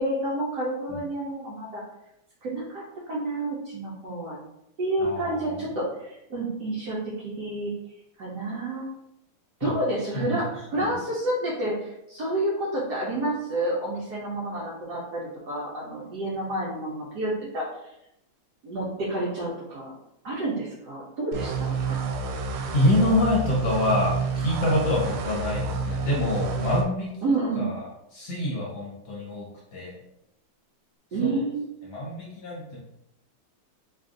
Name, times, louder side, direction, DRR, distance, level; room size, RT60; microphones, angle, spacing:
voice 1, 0.0-1.8 2.4-4.4 4.8-7.7 8.2-8.9 9.6-17.7 18.6-19.9 20.2-22.0 27.2-27.7 31.1-31.7, right 2 dB, 65° right, -5 dB, 1.1 m, -29 dB
voice 2, 5.0-5.6 9.6-9.7 10.1-10.4 10.8-10.9 22.7-27.2 27.5-30.0 31.2-31.4 31.9-32.8, left 1 dB, 60° left, -4 dB, 1.3 m, -26 dB
sound 1, 21.3-26.8, right 4 dB, 85° right, 1.4 m, -29 dB
3.3 x 2.5 x 3.7 m, 0.82 s
omnidirectional pair, 2.3 m